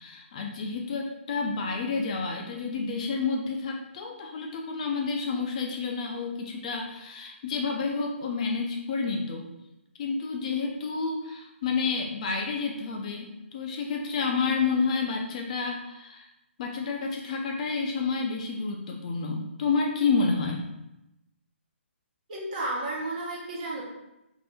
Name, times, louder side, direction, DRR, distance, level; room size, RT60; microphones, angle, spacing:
voice 1, 0.0-9.5 10.0-16.3 16.6-20.6, left 4 dB, 35° left, 1 dB, 0.4 m, -29 dB
voice 2, 22.3-23.8, right 2 dB, 40° right, -4 dB, 1.0 m, -32 dB
2.7 x 2.6 x 3.3 m, 0.91 s
hypercardioid pair, 150°, 7 cm